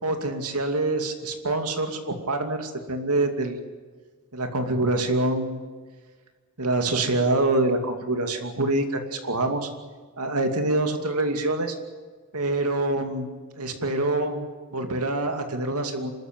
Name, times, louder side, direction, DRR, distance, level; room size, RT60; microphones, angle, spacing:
voice 1, 0.0-3.6 4.3-5.6 6.6-9.7 10.2-11.7 12.3-13.3 13.6-14.4 14.7-16.1, right 2 dB, 90° right, 5 dB, 2.6 m, -25 dB
26.0 x 13.5 x 9.0 m, 1.5 s
head